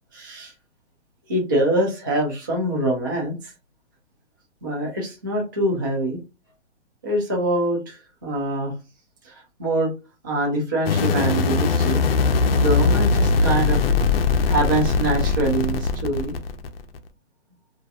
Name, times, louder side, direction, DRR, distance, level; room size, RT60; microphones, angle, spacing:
voice 1, 0.1-0.5 1.3-3.5 4.6-6.2 7.0-8.7 9.2-9.9 10.2-12.0 12.6-13.9 14.5-16.3, right 1 dB, 20° right, -1 dB, 0.3 m, -24 dB
sound 1, 10.9-17.0, left 4 dB, 55° left, 0.5 m, -20 dB
2.4 x 2.2 x 2.6 m, 0.28 s
hypercardioid pair, 145°, 35 cm